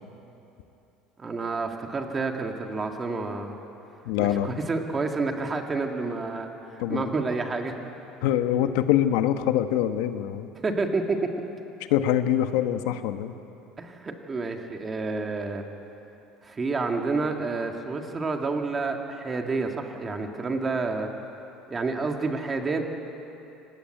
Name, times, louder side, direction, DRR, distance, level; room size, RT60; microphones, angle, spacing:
voice 1, 1.2-3.6 4.2-7.7 10.6-11.3 13.8-15.6 16.4-21.1 21.7-22.8, right 3 dB, 20° right, 3 dB, 2.0 m, -29 dB
voice 2, 4.1-4.6 6.8-7.1 8.2-10.5 11.9-13.3, left 11 dB, 85° left, 9 dB, 1.2 m, -24 dB
24.0 x 19.0 x 9.1 m, 2.9 s
cardioid pair, 145°, 0 cm